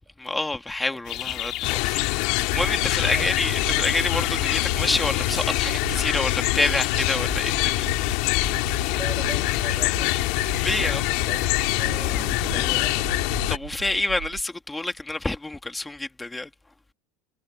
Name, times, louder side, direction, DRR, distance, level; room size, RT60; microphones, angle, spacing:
voice 1, 0.2-7.8 10.6-11.1 11.8-12.8 13.5-16.5, left 2 dB, 10° left, 2.0 m, -28 dB
sound 1, 1.0-12.7, left 16 dB, 50° left, 2.7 m, -35 dB
sound 2, 1.6-13.6, left 26 dB, 65° left, 3.3 m, -25 dB
sound 3, 2.5-14.4, right 31 dB, 70° right, 5.2 m, -38 dB
voice 2, 3.0-3.4 8.9-10.3 10.8-13.4, right 4 dB, 15° right, 6.0 m, -41 dB
supercardioid pair, 130°, 0 cm